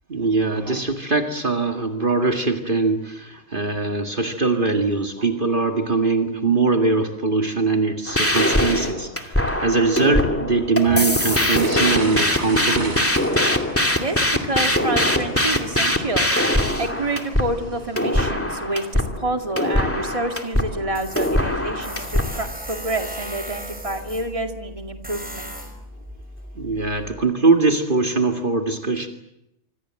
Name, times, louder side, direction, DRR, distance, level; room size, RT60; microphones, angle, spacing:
voice 1, 0.1-13.1 26.6-29.1, right 3 dB, 45° right, 4 dB, 2.2 m, -21 dB
sound 1, 8.1-22.4, left 1 dB, 10° left, 2.4 m, -22 dB
sound 2, 9.2-18.1, right 2 dB, 70° right, 3.8 m, -37 dB
voice 2, 13.9-16.3 16.8-25.6, right 2 dB, 30° right, 4 dB, 2.4 m, -28 dB
Tools, 20.9-27.1, equal, 5° right, 5.9 m, -36 dB
26.0 x 26.0 x 7.7 m, 0.83 s
omnidirectional pair, 1.2 m